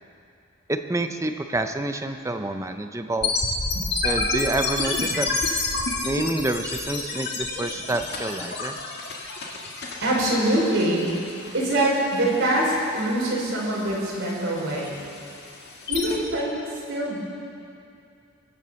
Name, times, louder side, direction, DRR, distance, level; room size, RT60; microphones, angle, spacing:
voice 1, 0.7-3.3 4.0-5.3 6.0-8.8, right 2 dB, 15° right, 7 dB, 0.5 m, -28 dB
sound 1, 3.2-16.2, left 3 dB, 50° left, 1.9 m, -30 dB
voice 2, 10.0-11.1 11.5-14.9 15.9-16.5 16.9-17.2, right 1 dB, 55° right, -5 dB, 5.0 m, -24 dB
23.5 x 7.9 x 7.0 m, 2.6 s
head